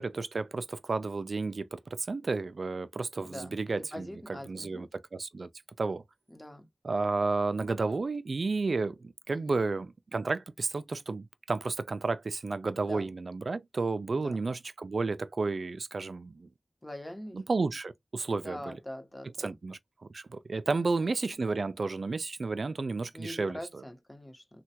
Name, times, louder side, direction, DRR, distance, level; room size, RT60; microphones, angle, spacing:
voice 1, 0.0-5.5 5.8-6.0 6.8-16.5 17.3-18.7 19.4-19.8 20.1-23.8, right 3 dB, 75° right, 0.3 m, -32 dB
voice 2, 3.2-4.9 6.3-6.7 9.3-9.6 12.8-13.1 14.1-14.4 16.8-17.4 18.4-19.6 20.7-21.1 23.1-24.6, left 1 dB, 20° left, 0.9 m, -44 dB
3.2 x 2.2 x 2.8 m
cardioid pair, 45°, 0 cm